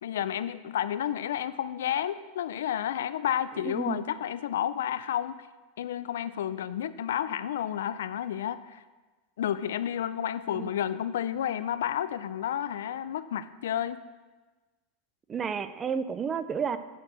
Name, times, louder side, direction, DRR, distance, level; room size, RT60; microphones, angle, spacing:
voice 1, 0.0-5.5 5.8-8.8 9.4-14.0, left 10 dB, 85° left, 14 dB, 0.4 m, -31 dB
voice 2, 3.6-4.0 10.5-10.7 15.3-16.8, right 7 dB, 25° right, 12 dB, 0.5 m, -31 dB
8.5 x 4.6 x 6.4 m, 1.2 s
supercardioid pair, 120°, 0 cm